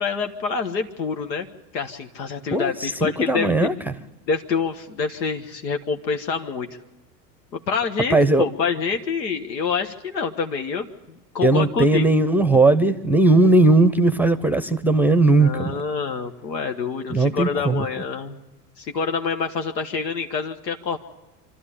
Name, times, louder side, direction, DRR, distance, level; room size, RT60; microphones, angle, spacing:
voice 1, 0.0-1.5 1.7-3.7 4.3-6.7 7.5-10.9 11.3-12.1 15.4-18.3 18.8-21.0, left 5 dB, 80° left, 6 dB, 1.3 m, -26 dB
voice 2, 2.5-3.7 8.1-8.4 11.4-15.8 17.1-17.9, right 2 dB, 5° right, 14 dB, 0.7 m, -18 dB
25.0 x 13.0 x 9.9 m, 1.1 s
hypercardioid pair, 85°, 49 cm